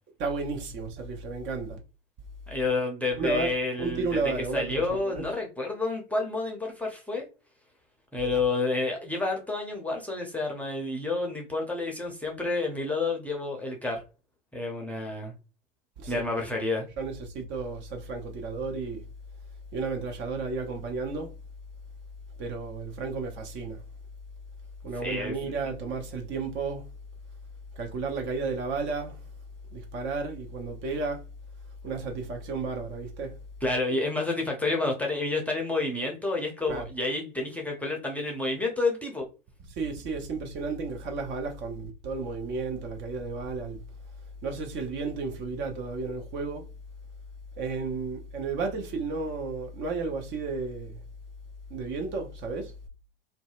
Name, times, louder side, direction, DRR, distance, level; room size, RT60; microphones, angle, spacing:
voice 1, 0.2-1.8 3.1-3.5 3.8-5.2 8.3-8.4 16.0-16.2 17.0-19.1 19.7-21.3 22.4-23.8 24.8-26.9 27.7-29.3 29.7-31.3 31.8-33.4 36.7-36.9 39.7-43.8 44.4-46.7 47.6-51.0 51.7-52.7, right 4 dB, 40° right, 0.7 m, -33 dB
voice 2, 2.5-4.2 4.5-7.3 8.1-14.0 14.5-15.3 16.1-16.9 25.0-25.3 33.6-39.3, left 3 dB, 5° left, 0.6 m, -29 dB
2.6 x 2.2 x 2.4 m
hypercardioid pair, 85°, 29 cm